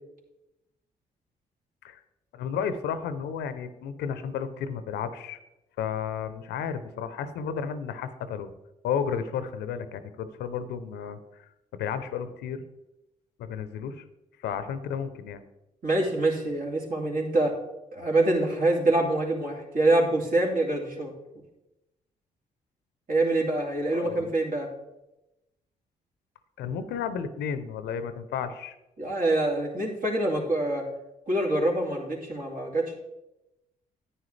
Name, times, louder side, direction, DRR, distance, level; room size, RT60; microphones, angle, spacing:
voice 1, 2.3-5.4 5.8-8.5 8.8-11.4 11.7-12.6 13.4-14.0 14.4-15.4 23.9-24.3 26.6-28.7, left 7 dB, 80° left, 11 dB, 0.7 m, -32 dB
voice 2, 15.8-17.5 17.9-21.1 23.1-24.7 29.0-30.9 31.3-32.9, right 2 dB, 55° right, -1 dB, 2.7 m, -25 dB
9.9 x 9.2 x 3.3 m, 0.94 s
supercardioid pair, 50°, 17 cm